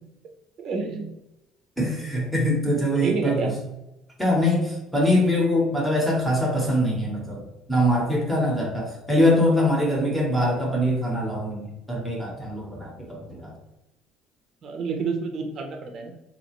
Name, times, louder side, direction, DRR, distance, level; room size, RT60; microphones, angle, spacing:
voice 1, 0.6-1.1 1.9-2.0 2.9-3.6 10.0-10.1 14.6-16.1, right 4 dB, 40° right, 4 dB, 0.7 m, -29 dB
voice 2, 1.8-3.5 4.2-7.4 7.7-13.5, left 1 dB, ahead, -2 dB, 1.1 m, -23 dB
4.1 x 2.8 x 3.0 m, 0.93 s
cardioid pair, 150°, 0 cm